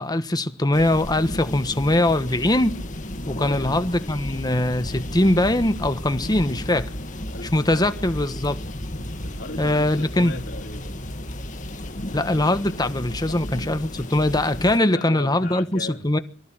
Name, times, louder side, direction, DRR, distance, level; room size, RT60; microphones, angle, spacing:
voice 1, 0.0-2.8 3.3-6.9 7.5-8.6 9.6-10.3 12.1-16.2, left 1 dB, 20° left, 1.3 m, -22 dB
sound 1, 0.7-14.8, left 1 dB, 40° left, 2.1 m, -33 dB
voice 2, 3.4-3.8 7.3-7.9 9.2-11.0 13.3-13.4 14.8-16.1, left 2 dB, 60° left, 3.4 m, -38 dB
24.0 x 14.5 x 8.9 m
head